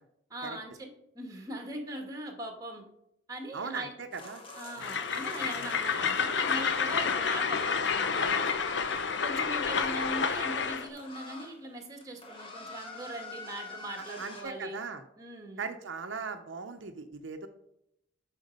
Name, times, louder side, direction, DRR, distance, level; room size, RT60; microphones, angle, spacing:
voice 1, 0.3-2.8 3.3-3.9 4.5-14.8 15.2-15.6, right 1 dB, 20° right, 3 dB, 1.7 m, -41 dB
voice 2, 3.5-4.4 4.8-4.9 5.5-5.7 14.2-15.0 15.6-17.5, right 5 dB, 75° right, 7 dB, 0.8 m, -39 dB
sound 1, 4.1-9.1 9.8-11.6 11.9-14.4, left 3 dB, 30° left, 1.4 m, -46 dB
Train, 4.8-10.9, left 6 dB, 65° left, 0.7 m, -29 dB
9.1 x 6.1 x 5.3 m, 0.78 s
head